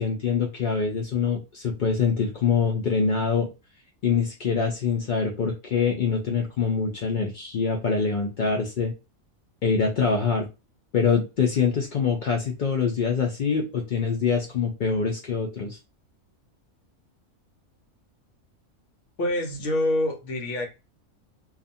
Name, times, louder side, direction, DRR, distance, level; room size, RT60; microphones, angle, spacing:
voice 1, 0.0-3.5 4.0-8.9 9.6-10.5 10.9-15.8, left 5 dB, 80° left, 0.4 m, -24 dB
voice 2, 19.2-20.7, left 1 dB, 60° left, 1.0 m, -26 dB
2.5 x 2.4 x 2.6 m
omnidirectional pair, 1.5 m